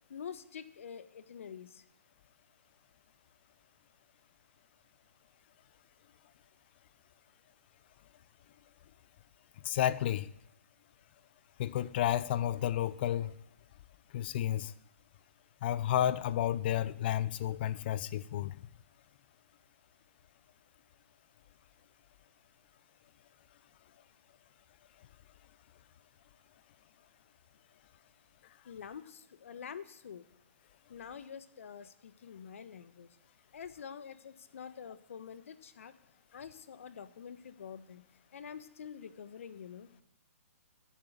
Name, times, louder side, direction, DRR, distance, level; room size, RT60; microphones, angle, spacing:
voice 1, 0.1-1.8 28.6-30.2 30.9-33.1 33.5-35.9 36.3-38.0 38.3-39.9, left 7 dB, 60° left, 1.3 m, -47 dB
voice 2, 9.6-10.3 11.6-13.3 14.1-14.7 15.6-18.6, left 11 dB, 45° left, 0.7 m, -31 dB
13.5 x 8.4 x 9.4 m
hypercardioid pair, 135°, 8 cm